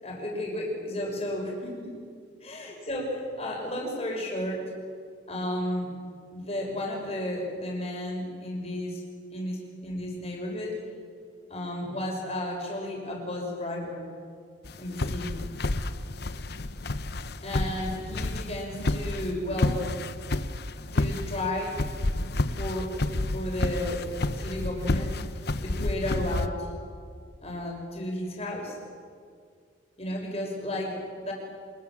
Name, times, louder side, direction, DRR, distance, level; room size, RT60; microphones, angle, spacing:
voice 1, 0.0-1.9 2.4-4.7 5.3-5.9 6.3-9.0 9.3-10.8 11.5-14.1 14.8-15.4 17.4-19.9 20.9-21.8 22.5-23.0 23.3-25.2 25.6-26.7 27.4-28.8 30.0-31.3, left 1 dB, 30° left, -1 dB, 6.1 m, -33 dB
sound 1, 14.6-26.5, left 2 dB, 55° left, 0.9 m, -30 dB
26.0 x 21.0 x 7.6 m, 2.2 s
head